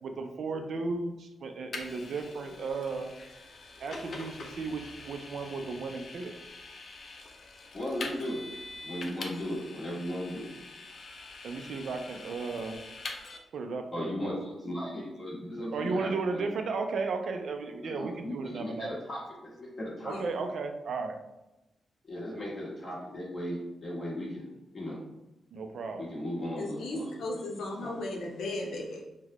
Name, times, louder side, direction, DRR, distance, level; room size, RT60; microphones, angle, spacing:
voice 1, 0.0-3.1 3.8-6.3 11.4-12.8 13.5-14.3 15.7-19.0 20.0-21.2 25.5-26.1, right 4 dB, 65° right, 5 dB, 0.4 m, -34 dB
Vehicle, 1.7-13.4, left 3 dB, 50° left, 0.5 m, -44 dB
voice 2, 7.7-8.5 8.8-10.5 13.9-16.5 17.8-20.5 22.0-25.0 26.0-28.0, equal, 35° left, -5 dB, 1.3 m, -37 dB
voice 3, 26.6-29.0, left 2 dB, 90° left, -1 dB, 0.7 m, -36 dB
3.9 x 2.1 x 2.9 m, 0.96 s
wide cardioid pair, 130°, 0 cm